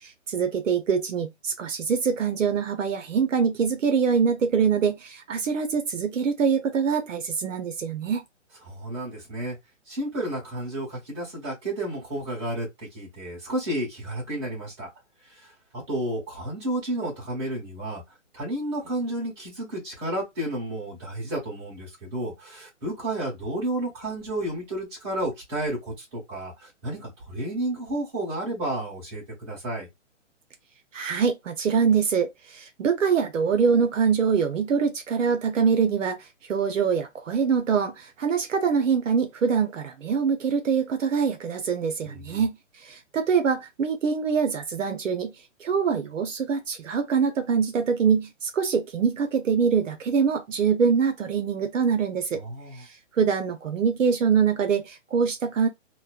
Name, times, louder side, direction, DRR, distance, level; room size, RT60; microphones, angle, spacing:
voice 1, 0.0-8.2 30.9-45.3 45.6-52.4 52.7-55.7, right 6 dB, 80° right, 0.7 m, -24 dB
voice 2, 8.6-9.6 9.9-14.9 15.3-18.0 18.3-29.9 42.0-42.4 52.4-52.9, right 1 dB, 20° right, 1.5 m, -31 dB
3.0 x 2.1 x 2.4 m
hypercardioid pair, 175°, 38 cm